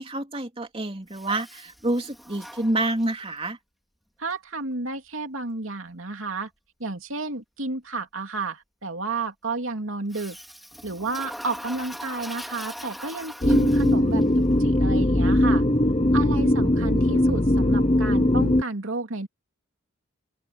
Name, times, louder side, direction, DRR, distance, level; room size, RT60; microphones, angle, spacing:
voice 1, 0.0-3.6, right 2 dB, 25° right, 3.2 m, -28 dB
Toilet flush, 1.1-3.3 10.1-14.2, equal, ahead, 2.6 m, -41 dB
voice 2, 4.2-6.5 6.8-10.4 10.8-15.6 16.1-19.3, right 3 dB, 75° right, 2.9 m, -32 dB
sound 1, 13.4-18.6, left 1 dB, 30° left, 1.1 m, -20 dB
open air
head